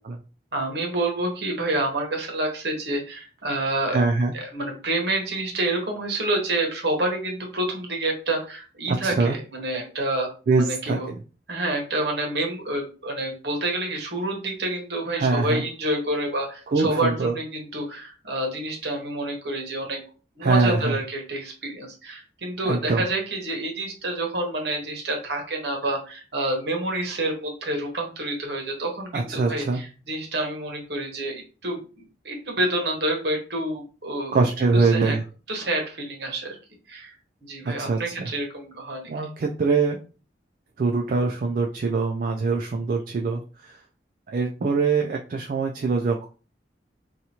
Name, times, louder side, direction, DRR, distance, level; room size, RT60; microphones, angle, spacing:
voice 1, 0.5-4.0 4.3-10.3 10.6-11.1 11.5-20.0 20.4-34.3 34.7-35.2 35.5-36.6 36.9-37.1 37.4-39.1, right 1 dB, 65° right, 2 dB, 1.0 m, -28 dB
voice 2, 3.9-4.3 8.9-9.4 10.5-11.2 15.2-15.6 16.7-17.3 20.4-21.0 22.6-23.0 29.1-29.8 34.3-35.2 37.7-38.3 39.1-40.0 40.8-43.8 44.3-46.2, right 4 dB, 50° right, 2 dB, 0.3 m, -23 dB
2.8 x 2.3 x 2.8 m, 0.35 s
head